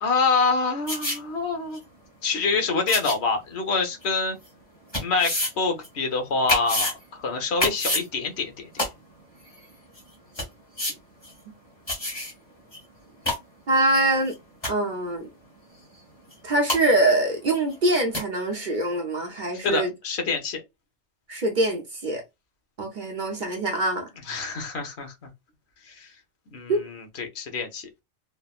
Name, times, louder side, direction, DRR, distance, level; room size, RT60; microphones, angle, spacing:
voice 1, 0.0-1.8 2.2-4.4 5.0-8.7 19.6-20.6 24.3-25.3 25.9-26.1 26.5-27.9, left 4 dB, 65° left, 1.1 m, -26 dB
sound 1, 0.9-1.2 1.7-1.8 2.9-3.2 4.0-4.1 4.9-5.5 5.8-5.9 6.5-6.9 7.6-8.0 8.8-8.9 9.6-9.7 10.0-10.1 10.3-10.4 10.8-10.9 11.2-11.3 11.9-12.3 12.7-12.8 13.1-13.4 14.3-14.4 14.6-14.9 16.3-16.4 16.7-16.8 17.7-17.8 18.1-18.2, left 1 dB, 20° left, 1.5 m, -26 dB
voice 2, 13.7-14.3 14.7-15.3 16.4-19.9 21.3-22.2 22.8-24.1 26.7-26.8, right 2 dB, 50° right, 0.8 m, -24 dB
3.4 x 2.1 x 2.3 m
omnidirectional pair, 1.2 m